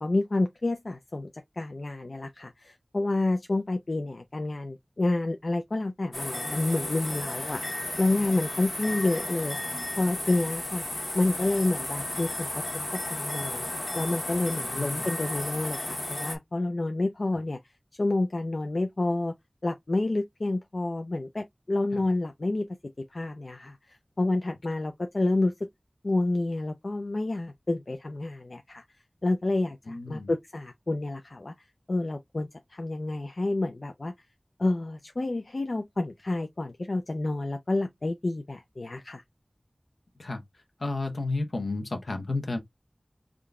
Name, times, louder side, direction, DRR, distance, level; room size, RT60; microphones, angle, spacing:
voice 1, 0.0-1.3 1.6-9.6 10.0-10.8 11.1-12.6 12.9-13.6 13.9-17.6 18.0-19.3 19.6-22.7 23.1-25.5 26.0-28.8 29.2-31.5 31.9-34.1 34.6-39.2, left 2 dB, 70° left, 0.4 m, -29 dB
sound 1, 6.1-16.4, left 1 dB, 50° left, 1.1 m, -34 dB
voice 2, 14.7-15.1 21.9-22.1 29.9-30.3 40.2-40.4 40.8-42.6, left 2 dB, 85° left, 0.8 m, -32 dB
3.7 x 2.2 x 3.5 m
wide cardioid pair, 50°, 0 cm